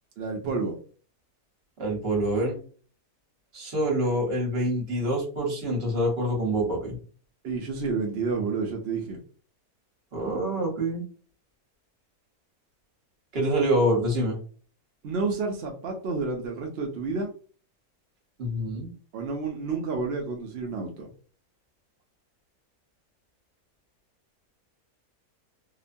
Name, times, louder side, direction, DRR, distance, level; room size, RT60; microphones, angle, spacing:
voice 1, 0.2-0.7 7.4-9.2 15.0-17.3 19.1-21.1, right 4 dB, 70° right, 1 dB, 0.5 m, -30 dB
voice 2, 1.8-2.6 3.5-6.9 10.1-11.0 13.3-14.4 18.4-18.9, right 1 dB, 45° right, -1 dB, 1.1 m, -26 dB
2.9 x 2.1 x 2.5 m, 0.41 s
omnidirectional pair, 1.6 m